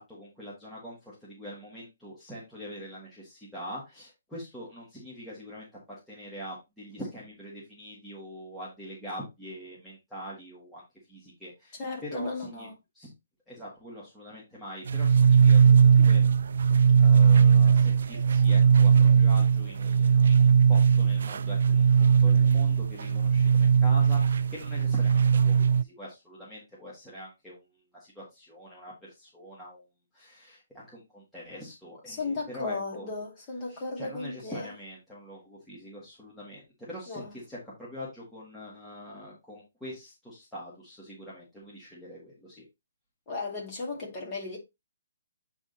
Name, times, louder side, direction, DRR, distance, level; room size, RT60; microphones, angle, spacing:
voice 1, 0.0-10.8 11.1-12.7 13.0-13.1 13.5-16.2 17.0-27.6 27.9-29.8 30.1-33.1 33.7-42.7, equal, 5° left, 1.8 m, -44 dB
voice 2, 11.8-12.7 32.1-34.7 37.1-37.3 43.3-44.6, left 3 dB, 20° left, 2.4 m, -35 dB
sound 1, 14.9-25.8, right 7 dB, 60° right, 0.3 m, -20 dB
8.6 x 3.6 x 4.1 m
hypercardioid pair, 170°, 0 cm